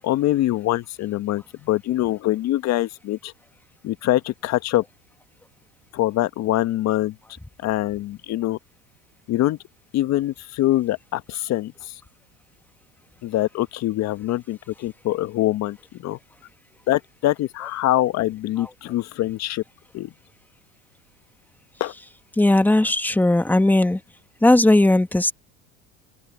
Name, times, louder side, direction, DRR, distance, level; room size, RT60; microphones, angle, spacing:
voice 1, 0.0-3.3 3.8-4.8 5.9-7.2 7.6-8.6 9.3-9.6 9.9-12.0 13.2-16.2 16.9-19.6 19.9-20.1 21.8-21.9, left 15 dB, 50° left, 1.5 m, -24 dB
voice 2, 22.3-24.0 24.4-25.3, left 1 dB, 5° left, 1.7 m, -17 dB
open air
supercardioid pair, 90°, 33 cm